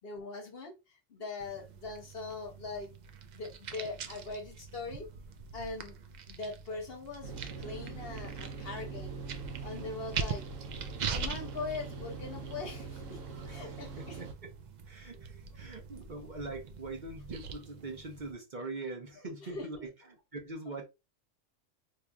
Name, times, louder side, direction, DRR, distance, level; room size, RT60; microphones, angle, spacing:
voice 1, 0.0-2.9 3.3-5.1 5.5-6.0 6.3-9.2 9.6-10.4 11.1-13.2 13.5-14.2 19.5-19.7, left 3 dB, 55° left, 0.9 m, -41 dB
sound 1, 1.4-18.3, right 5 dB, 65° right, 0.4 m, -43 dB
sound 2, 7.2-14.3, right 5 dB, 80° right, 1.1 m, -43 dB
voice 2, 13.4-14.5 14.8-20.8, right 2 dB, 45° right, 0.8 m, -43 dB
4.6 x 2.7 x 2.3 m
omnidirectional pair, 1.3 m